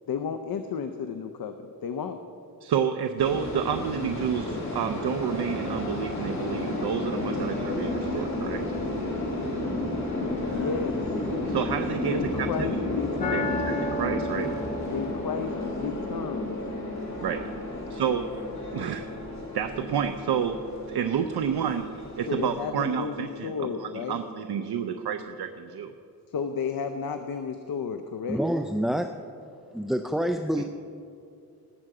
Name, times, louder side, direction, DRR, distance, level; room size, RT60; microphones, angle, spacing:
voice 1, 0.1-2.2 10.5-11.2 12.0-13.6 14.8-16.5 22.3-24.2 26.3-28.4, left 6 dB, 65° left, 7 dB, 0.7 m, -33 dB
voice 2, 2.6-8.6 11.5-12.7 13.3-14.5 17.2-17.4 17.9-18.2 18.7-19.1 19.5-20.6 20.9-21.9 22.2-25.9, right 8 dB, 85° right, 7 dB, 0.6 m, -29 dB
sound 1, 3.2-22.7, left 2 dB, 45° left, 2.7 m, -32 dB
sound 2, 13.2-25.2, left 1 dB, 20° left, 1.3 m, -39 dB
voice 3, 28.3-29.1 29.7-30.6, equal, ahead, 6 dB, 0.3 m, -27 dB
19.0 x 7.7 x 4.9 m, 2.6 s
wide cardioid pair, 120°, 38 cm